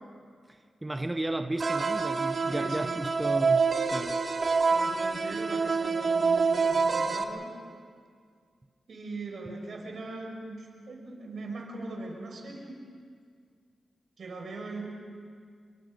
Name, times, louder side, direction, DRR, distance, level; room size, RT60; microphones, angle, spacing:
voice 1, 0.5-4.2, right 1 dB, 15° right, 7 dB, 0.9 m, -34 dB
sound 1, 1.6-7.2, right 4 dB, 50° right, 1.8 m, -26 dB
voice 2, 2.4-3.1 4.7-7.5 8.9-12.8 14.2-14.8, right 2 dB, 65° right, 1 dB, 5.7 m, -40 dB
30.0 x 23.5 x 5.3 m, 2.1 s
cardioid pair, 70°, 0 cm